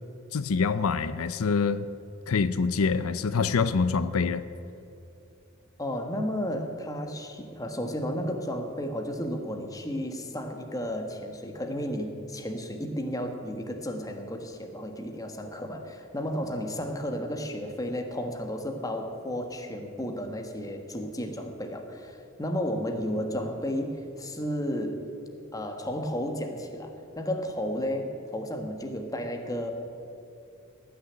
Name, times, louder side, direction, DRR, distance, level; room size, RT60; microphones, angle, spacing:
voice 1, 0.3-1.9 2.3-4.4, left 5 dB, 90° left, 13 dB, 0.5 m, -25 dB
voice 2, 5.8-25.0 25.5-29.7, equal, 15° left, 4 dB, 1.4 m, -33 dB
19.0 x 6.8 x 9.6 m, 2.6 s
head